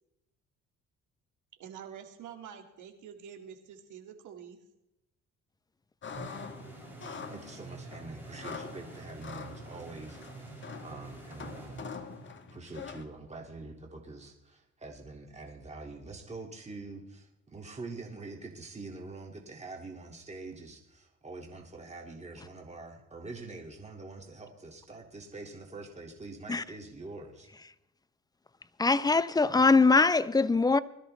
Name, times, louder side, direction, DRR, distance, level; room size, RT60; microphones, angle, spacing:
voice 1, 1.6-4.6, right 8 dB, 80° right, 1.9 m, -47 dB
sound 1, 6.0-13.0, left 5 dB, 40° left, 1.4 m, -45 dB
sound 2, 6.1-12.6, right 3 dB, 5° right, 6.7 m, -47 dB
voice 2, 7.3-10.2 10.4-11.8 12.5-27.5, right 3 dB, 20° right, 2.1 m, -45 dB
voice 3, 28.8-30.8, left 3 dB, 15° left, 0.5 m, -22 dB
20.5 x 13.0 x 3.2 m
cardioid pair, 90°, 30 cm